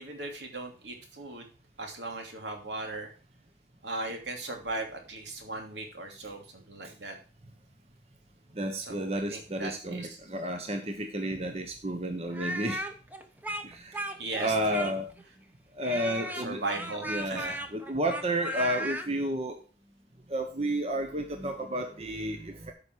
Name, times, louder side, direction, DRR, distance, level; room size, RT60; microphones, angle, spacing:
voice 1, 0.0-1.5 1.8-3.1 3.8-7.2 8.8-10.2 14.2-14.9 16.2-17.6, right 2 dB, 80° right, 3 dB, 2.9 m, -38 dB
voice 2, 8.5-12.8 13.6-14.0 14.3-15.1 15.7-16.6 17.1-19.6 20.3-22.7, right 1 dB, 35° right, 5 dB, 1.1 m, -31 dB
Speech, 12.3-15.2 15.8-19.1, right 1 dB, 10° right, 0.9 m, -36 dB
13.5 x 5.7 x 4.7 m, 0.37 s
head